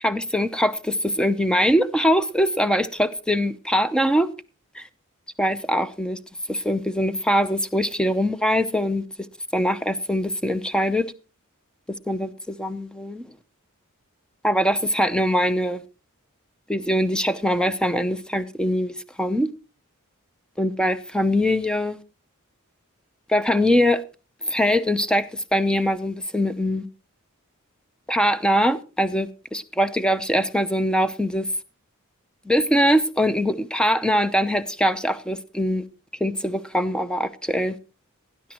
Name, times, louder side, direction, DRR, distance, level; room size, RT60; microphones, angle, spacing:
voice 1, 0.0-4.3 4.7-4.9 5.4-6.2 6.5-9.0 9.5-11.1 12.1-13.2 14.4-15.8 16.7-19.5 20.6-22.0 23.3-24.0 24.4-26.9 28.1-31.5 32.5-35.8 36.2-37.8, equal, 5° left, 0.7 m, -22 dB
19.0 x 10.5 x 3.0 m
head